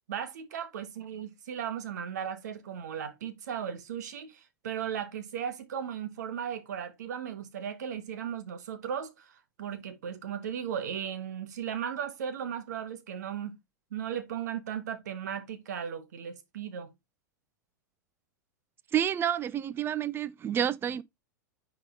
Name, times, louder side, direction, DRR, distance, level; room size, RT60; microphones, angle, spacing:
voice 1, 0.1-13.6 13.9-16.9, right 8 dB, 65° right, 1.4 m, -36 dB
voice 2, 18.9-21.0, right 9 dB, 20° right, 0.5 m, -29 dB
9.8 x 3.7 x 3.7 m
figure-of-eight pair, 95°, 10 cm